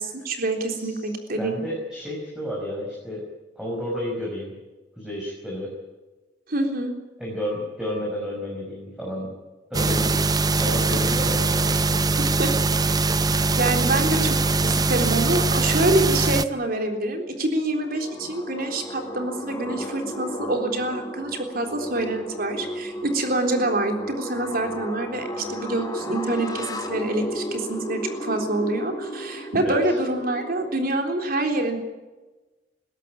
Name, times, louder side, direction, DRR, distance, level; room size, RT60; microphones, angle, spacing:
voice 1, 0.0-1.6 6.5-6.9 12.2-12.5 12.8-14.4 14.6-31.8, right 2 dB, 55° right, 4 dB, 3.7 m, -26 dB
voice 2, 1.4-3.2 3.6-4.5 5.0-5.7 7.2-9.3 9.7-10.2 10.6-12.0 29.6-29.8, equal, 5° right, -3 dB, 5.2 m, -31 dB
sound 1, 9.7-16.5, right 3 dB, 20° right, 0.6 m, -22 dB
sound 2, 17.7-30.8, left 1 dB, 20° left, 2.7 m, -34 dB
20.5 x 16.5 x 8.8 m, 1.2 s
head